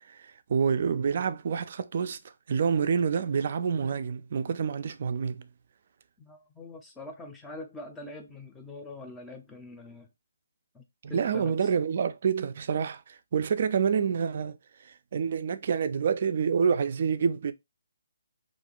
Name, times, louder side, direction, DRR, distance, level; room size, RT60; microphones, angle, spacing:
voice 1, 0.1-2.2 2.5-5.5 11.0-17.5, right 6 dB, 50° right, 0.3 m, -28 dB
voice 2, 6.2-10.1 10.7-10.8 11.1-11.5, left 2 dB, 10° left, 0.5 m, -44 dB
2.5 x 2.2 x 2.9 m
figure-of-eight pair, 150°, 0 cm